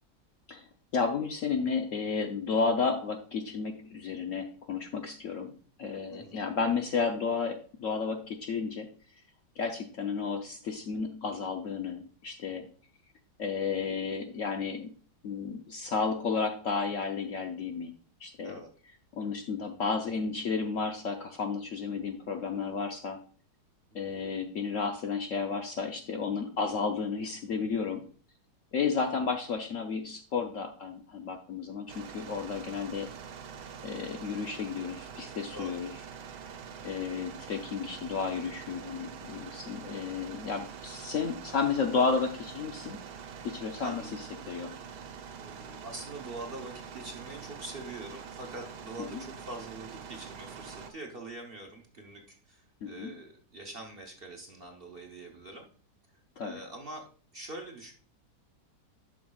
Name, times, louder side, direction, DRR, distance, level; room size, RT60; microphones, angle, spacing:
voice 1, 0.9-8.9 9.6-12.7 13.4-14.9 15.2-17.9 18.2-18.6 19.1-23.2 23.9-28.0 28.7-33.1 33.8-35.9 36.8-43.0 43.4-44.0 44.5-44.7 49.1-49.2 52.8-53.1 56.4-56.6, left 5 dB, 60° left, 4 dB, 0.9 m, -32 dB
voice 2, 6.1-6.5 18.4-18.7 23.9-24.0 35.5-35.8 36.8-37.1 43.8-44.2 45.4-55.7 56.4-57.9, right 2 dB, 40° right, 1 dB, 1.0 m, -44 dB
sound 1, 31.9-50.9, right 7 dB, 75° right, 1.4 m, -45 dB
11.0 x 6.0 x 2.3 m, 0.43 s
omnidirectional pair, 1.8 m